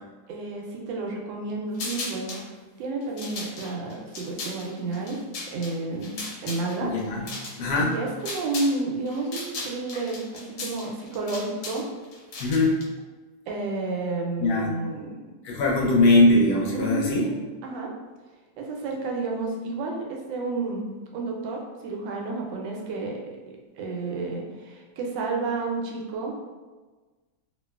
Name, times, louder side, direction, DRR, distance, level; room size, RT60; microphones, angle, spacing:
voice 1, 0.3-2.4 2.8-5.2 5.5-6.9 7.8-11.9 13.5-15.3 16.7-17.9 18.6-23.2 23.5-26.4, right 3 dB, 90° right, 0 dB, 1.3 m, -31 dB
sound 1, 1.7-2.5 3.0-8.8 9.1-12.8, left 3 dB, 90° left, 1.4 m, -37 dB
voice 2, 6.8-7.2 7.6-7.9 12.4-12.8 14.4-14.8 15.4-17.2, left 2 dB, 75° left, -2 dB, 1.1 m, -21 dB
2.9 x 2.7 x 2.2 m, 1.3 s
omnidirectional pair, 1.9 m